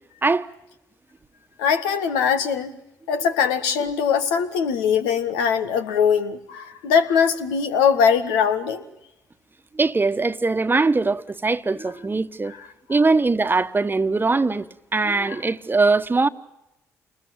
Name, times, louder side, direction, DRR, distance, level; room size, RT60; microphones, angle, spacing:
voice 1, 1.6-2.7 3.1-8.8 15.2-15.4, left 7 dB, 80° left, 1.7 m, -21 dB
voice 2, 9.7-12.5 12.9-16.3, right 3 dB, 25° right, 1.3 m, -21 dB
28.5 x 20.5 x 9.0 m
hypercardioid pair, 45°, 8 cm